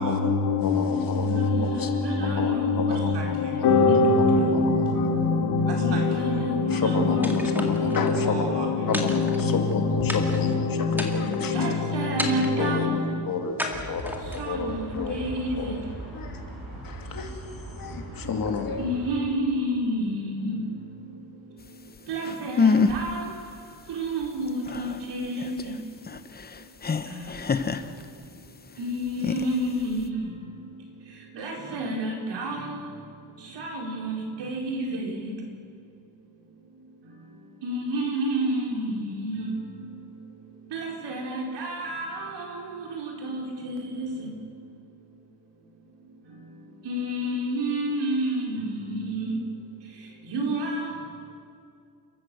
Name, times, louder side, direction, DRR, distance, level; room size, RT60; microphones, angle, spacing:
voice 1, 0.0-13.1, left 4 dB, 70° left, 2.9 m, -24 dB
voice 2, 0.6-1.9 2.3-3.4 4.5-4.6 4.9-5.1 6.7-8.4 8.9-11.7 12.6-12.9 13.2-15.3 15.5-15.8 16.1-16.4 16.8-17.5 17.7-18.9, left 5 dB, 50° left, 2.6 m, -31 dB
voice 3, 1.2-3.4 3.7-4.2 5.8-8.7 8.9-9.0 11.5-12.9 14.4-15.8 18.8-20.6 22.1-23.3 23.9-25.7 27.1-27.2 28.8-30.3 31.3-32.7 33.5-35.3 37.6-39.6 40.7-42.6 42.9-44.3 46.8-49.4 50.3-50.9, right 1 dB, 75° right, 4.8 m, -30 dB
sound 1, 7.2-8.1 8.9-9.7 10.1-10.5 10.9-11.5 12.2-12.7 13.6-14.5, equal, 5° right, 2.0 m, -34 dB
sound 2, 13.7-19.2, right 1 dB, 55° right, 7.1 m, -39 dB
sound 3, 22.0-22.1 22.2-23.1 23.5-23.6 23.9-28.5 29.0-30.1, left 5 dB, 20° left, 0.8 m, -26 dB
29.5 x 14.0 x 7.8 m
cardioid pair, 145°, 42 cm